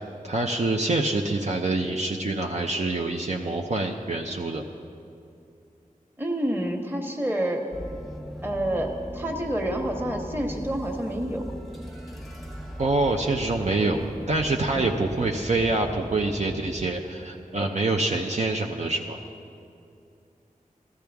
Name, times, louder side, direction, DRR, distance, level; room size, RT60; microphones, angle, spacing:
voice 1, 0.2-4.6 12.8-14.0 14.3-19.2, right 2 dB, 55° right, 1 dB, 0.6 m, -26 dB
voice 2, 6.2-7.6 8.4-11.4 14.7-14.9, right 1 dB, 15° right, 2 dB, 1.3 m, -28 dB
sound 1, 7.7-16.9, equal, ahead, 1.0 m, -39 dB
14.5 x 13.5 x 3.5 m, 2.5 s
wide cardioid pair, 70°, 14 cm